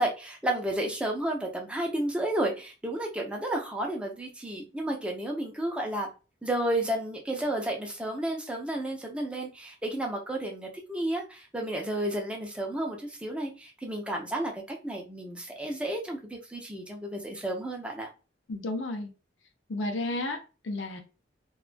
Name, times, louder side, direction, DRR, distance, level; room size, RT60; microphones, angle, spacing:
voice 1, 0.0-6.1 6.4-18.1, right 1 dB, 5° right, 0 dB, 0.5 m, -32 dB
voice 2, 18.5-19.1 19.7-21.0, left 2 dB, 75° left, 4 dB, 0.5 m, -32 dB
2.3 x 2.2 x 2.5 m, 0.31 s
head